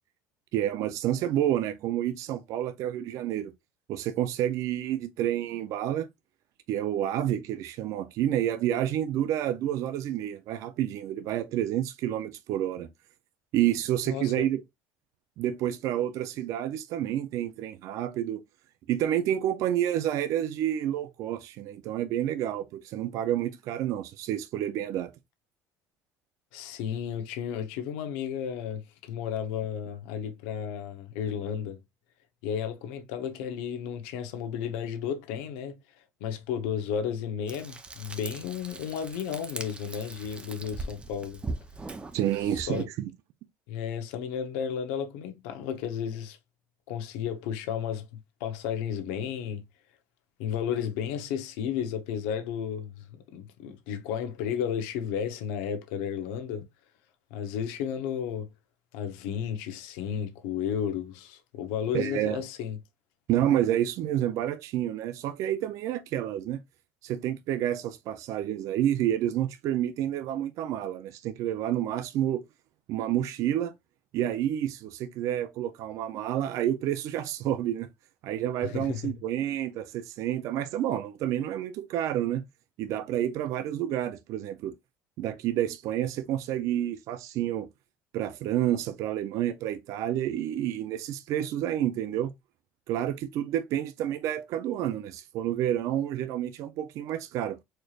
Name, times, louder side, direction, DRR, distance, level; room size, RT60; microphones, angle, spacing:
voice 1, 0.5-3.5 3.9-6.1 6.7-12.9 13.5-14.6 15.4-18.4 18.9-25.1 42.1-43.1 61.9-62.4 63.3-66.6 67.0-72.4 72.9-73.7 74.1-77.9 78.2-82.4 82.8-84.7 85.2-87.7 88.1-92.3 92.9-97.6, right 11 dB, 60° right, 0.5 m, -29 dB
voice 2, 14.1-14.5 26.5-31.8 32.4-35.8 36.2-41.4 42.7-42.9 43.7-46.4 46.9-48.1 48.4-49.6 50.4-56.7 57.3-58.5 58.9-62.8 78.6-79.1, left 8 dB, 90° left, 0.8 m, -33 dB
Frying (food), 37.5-42.8, right 3 dB, 15° right, 0.6 m, -40 dB
4.4 x 3.2 x 2.4 m
cardioid pair, 120°, 6 cm